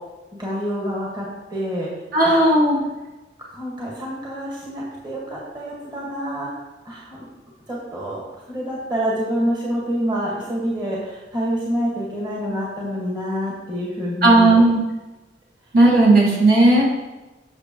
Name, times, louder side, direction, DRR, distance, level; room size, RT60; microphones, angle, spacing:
voice 1, 0.4-1.9 2.2-2.4 3.5-6.5 6.9-7.2 7.7-14.5, equal, 25° right, -6 dB, 1.8 m, -27 dB
voice 2, 2.1-2.8 14.2-14.8 15.7-17.0, right 2 dB, 55° right, -6 dB, 2.3 m, -14 dB
8.5 x 6.6 x 3.1 m, 1.1 s
head